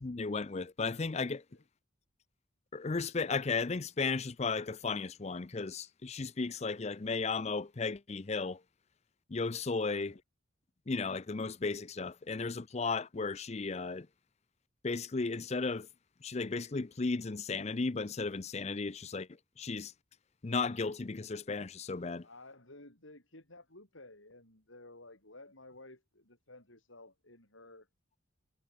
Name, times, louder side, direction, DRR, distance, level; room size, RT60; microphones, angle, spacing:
voice 1, 0.0-1.4 2.7-8.6 9.3-10.2 10.9-14.1 14.8-15.9 16.2-19.3 19.6-19.9 20.4-22.3, left 4 dB, 35° left, 0.5 m, -35 dB
voice 2, 9.8-10.2 22.2-27.9, left 2 dB, 75° left, 7.3 m, -54 dB
head